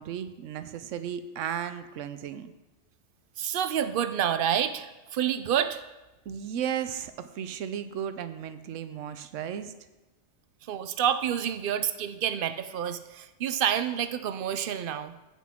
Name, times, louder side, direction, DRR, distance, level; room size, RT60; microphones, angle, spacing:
voice 1, 0.0-2.5 6.3-9.8, right 9 dB, 80° right, 11 dB, 1.0 m, -35 dB
voice 2, 3.4-5.8 10.6-15.1, right 9 dB, 60° right, 11 dB, 0.6 m, -28 dB
14.5 x 5.8 x 3.6 m, 1.1 s
omnidirectional pair, 1.3 m